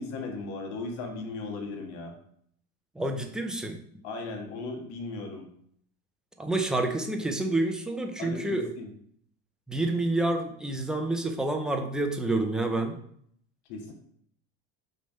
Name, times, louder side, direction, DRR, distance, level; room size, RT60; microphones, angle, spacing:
voice 1, 0.0-2.1 4.0-5.5 8.2-8.9 13.7-13.9, left 3 dB, 75° left, 3 dB, 1.6 m, -37 dB
voice 2, 3.0-3.8 6.4-8.7 9.7-13.0, right 2 dB, ahead, 3 dB, 0.5 m, -28 dB
6.4 x 3.4 x 5.4 m, 0.66 s
cardioid pair, 165°, 33 cm